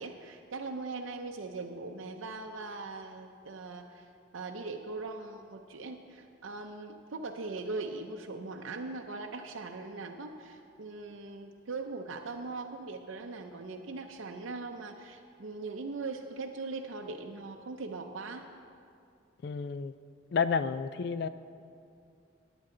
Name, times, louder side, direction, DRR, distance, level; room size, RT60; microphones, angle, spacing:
voice 1, 0.0-18.5, right 3 dB, 80° right, 4 dB, 0.6 m, -40 dB
voice 2, 19.4-19.9 20.3-21.3, left 5 dB, 55° left, 13 dB, 0.3 m, -30 dB
16.0 x 10.0 x 3.8 m, 2.4 s
head